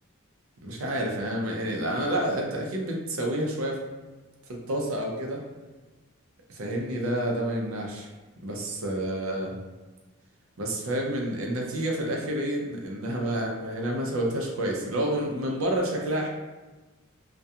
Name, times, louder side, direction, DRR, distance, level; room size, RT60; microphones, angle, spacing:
voice 1, 0.6-3.8 4.5-5.4 6.5-8.1 8.4-9.6 10.6-16.3, right 1 dB, 75° right, 0 dB, 0.5 m, -29 dB
2.3 x 2.2 x 2.7 m, 1.2 s
head